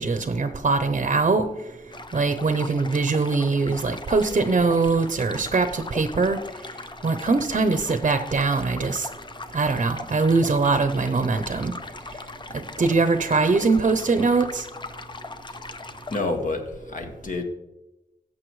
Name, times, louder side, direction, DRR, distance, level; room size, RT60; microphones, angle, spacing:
voice 1, 0.0-1.4 2.1-6.4 7.0-9.1 9.5-11.7 12.8-14.6, right 4 dB, 45° right, 9 dB, 0.7 m, -22 dB
sound 1, 1.9-16.2, left 3 dB, 30° left, 0.6 m, -40 dB
voice 2, 16.1-17.4, left 2 dB, 55° left, 3 dB, 1.7 m, -28 dB
15.0 x 7.4 x 3.2 m, 0.96 s
wide cardioid pair, 90°, 16 cm